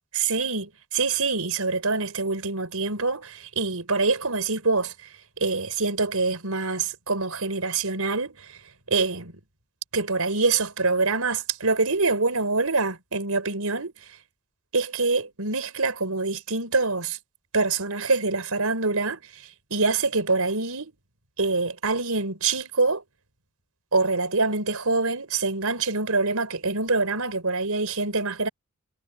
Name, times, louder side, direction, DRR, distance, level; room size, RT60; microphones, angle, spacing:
voice 1, 0.1-5.1 5.4-8.6 8.9-9.4 9.9-14.2 14.7-17.2 17.5-20.9 21.4-23.0 23.9-28.5, right 3 dB, 90° right, 4.5 m, -25 dB
head